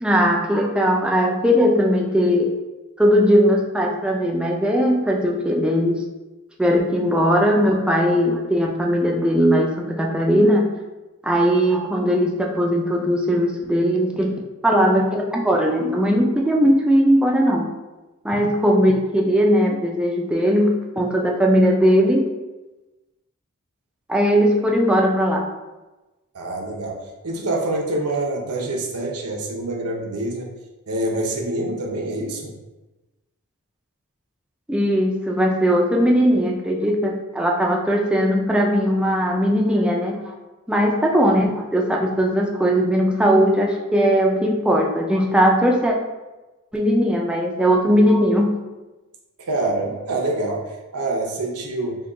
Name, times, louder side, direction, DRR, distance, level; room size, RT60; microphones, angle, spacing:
voice 1, 0.0-2.5 3.0-6.0 6.6-10.7 11.2-17.7 18.2-22.2 24.1-25.5 34.7-40.3 40.7-46.0 46.7-48.5, equal, 5° right, -1 dB, 0.3 m, -19 dB
voice 2, 26.3-30.5 30.9-32.5 49.4-52.0, right 2 dB, 90° right, 0 dB, 0.7 m, -26 dB
3.6 x 2.3 x 3.7 m, 1.1 s
head